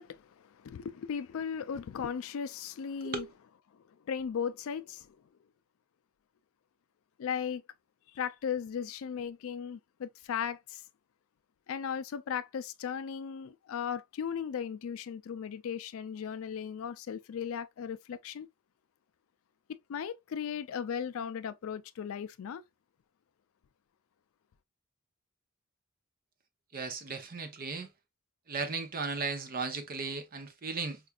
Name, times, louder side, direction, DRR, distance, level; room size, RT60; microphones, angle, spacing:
voice 1, 0.0-3.3 4.1-5.2 7.2-7.6 8.1-10.8 11.7-18.5 19.7-22.6, left 7 dB, 65° left, 0.3 m, -37 dB
voice 2, 26.7-27.9 28.5-31.0, right 4 dB, 40° right, 0.6 m, -36 dB
4.4 x 2.4 x 2.2 m
head